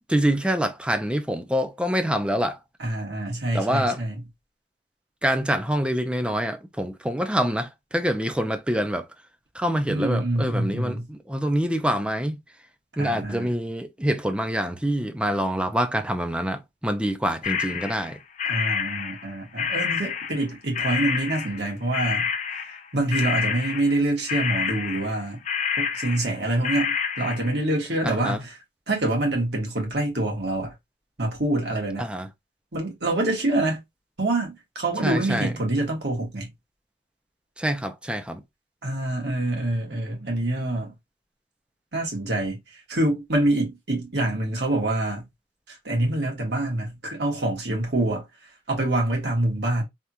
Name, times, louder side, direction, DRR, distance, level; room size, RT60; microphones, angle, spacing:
voice 1, 0.1-2.6 3.5-4.0 5.2-9.1 9.6-12.4 13.0-18.2 28.0-28.4 32.0-32.3 35.0-35.5 37.6-38.4, equal, 5° right, 0.5 m, -26 dB
voice 2, 2.8-4.3 9.9-11.1 13.0-13.6 18.5-25.4 25.8-28.6 28.9-30.7 31.2-32.1 32.7-33.8 34.2-36.5 38.8-40.9 41.9-45.3 45.7-48.3 48.7-49.8, right 1 dB, 70° right, 1.6 m, -26 dB
sound 1, 17.4-20.5 20.7-21.7 21.9-22.9 23.1-27.6, left 7 dB, 45° left, 0.5 m, -28 dB
3.5 x 2.5 x 2.8 m
head